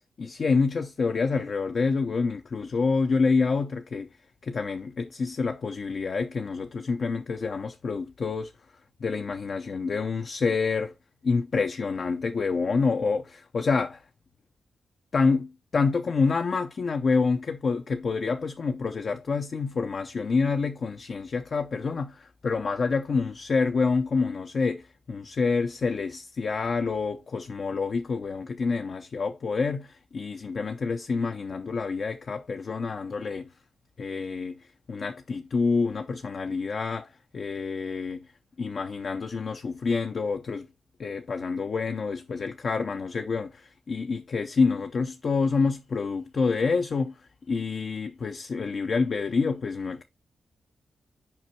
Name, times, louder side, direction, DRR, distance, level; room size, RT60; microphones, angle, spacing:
voice 1, 0.2-4.1 4.4-8.5 9.0-10.9 11.2-14.0 15.1-33.5 34.0-38.2 38.6-40.7 41.0-47.2 47.5-50.0, left 4 dB, 50° left, 0.6 m, -27 dB
5.8 x 5.1 x 4.5 m
wide cardioid pair, 110°, 0 cm